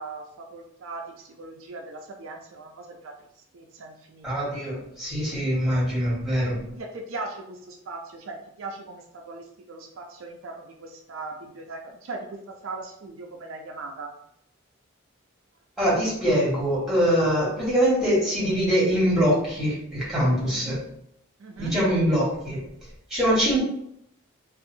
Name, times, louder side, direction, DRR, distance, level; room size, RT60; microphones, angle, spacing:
voice 1, 0.0-3.1 3.5-4.4 6.7-14.1 20.5-20.9 21.4-21.8, right 3 dB, 70° right, 2 dB, 0.4 m, -39 dB
voice 2, 4.2-6.6 15.8-20.8 21.6-22.6 23.1-23.6, equal, ahead, -7 dB, 1.3 m, -23 dB
2.6 x 2.4 x 2.7 m, 0.73 s
head